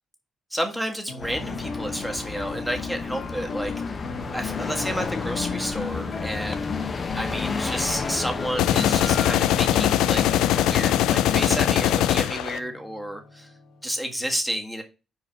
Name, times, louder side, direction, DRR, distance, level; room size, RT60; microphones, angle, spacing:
voice 1, 0.5-3.9 4.3-6.7 7.1-13.5 13.8-14.8, equal, 5° right, 3 dB, 1.5 m, -31 dB
sound 1, 1.1-13.8, left 5 dB, 70° left, 1.9 m, -36 dB
sound 2, 1.2-11.0, left 4 dB, 40° left, 0.9 m, -32 dB
sound 3, 8.6-12.6, left 12 dB, 90° left, 0.4 m, -21 dB
4.8 x 4.8 x 5.9 m, 0.31 s
cardioid pair, 90°, 0 cm